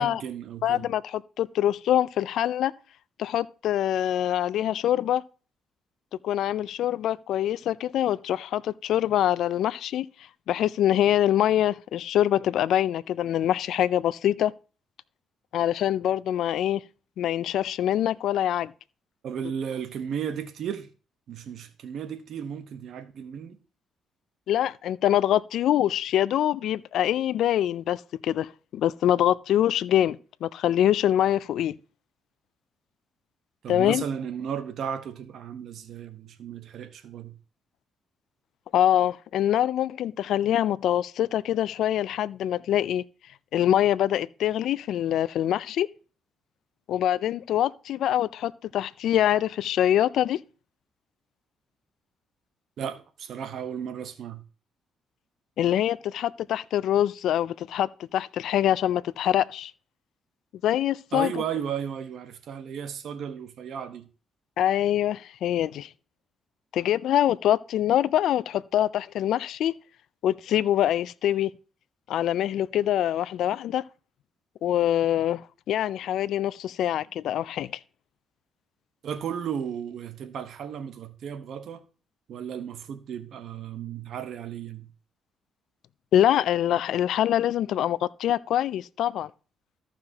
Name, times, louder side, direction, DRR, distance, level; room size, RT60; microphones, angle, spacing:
voice 1, 0.0-0.8 19.2-20.9 21.3-23.6 33.6-37.3 52.8-54.4 61.1-64.1 79.0-81.8 82.3-84.9, right 8 dB, 70° right, 1.1 m, -34 dB
voice 2, 0.6-2.7 3.2-5.2 6.2-10.1 10.5-14.5 15.5-16.8 17.2-18.7 24.5-31.8 33.7-34.0 38.7-43.0 43.5-45.9 46.9-50.4 55.6-59.7 60.6-61.3 64.6-65.9 66.7-69.7 70.2-71.5 72.1-73.8 74.6-77.7 86.1-89.3, left 11 dB, 75° left, 0.4 m, -24 dB
14.5 x 5.8 x 2.9 m
cardioid pair, 90°, 0 cm